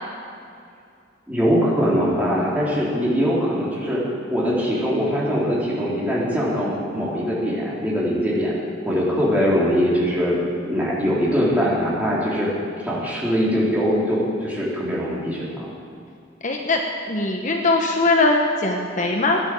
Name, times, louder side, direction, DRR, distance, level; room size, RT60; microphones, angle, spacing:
voice 1, 1.3-4.0 4.3-8.5 8.8-10.4 10.7-12.5 12.8-15.6, equal, 10° right, -6 dB, 3.6 m, -22 dB
voice 2, 16.4-16.8 17.1-19.4, left 2 dB, 40° left, 2 dB, 1.1 m, -20 dB
16.5 x 10.0 x 7.7 m, 2.4 s
head